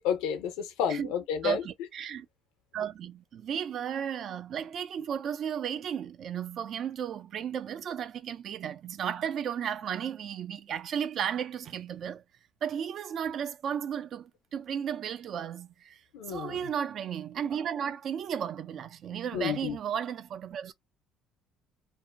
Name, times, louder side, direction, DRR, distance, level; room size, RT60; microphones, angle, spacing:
voice 1, 0.0-1.6 16.1-16.6 19.3-19.8, left 8 dB, 85° left, 0.6 m, -31 dB
voice 2, 1.4-2.3 2.7-12.2 12.6-16.0 16.3-20.7, right 8 dB, 55° right, 0.4 m, -34 dB
2.5 x 2.1 x 2.5 m
supercardioid pair, 90°, 0 cm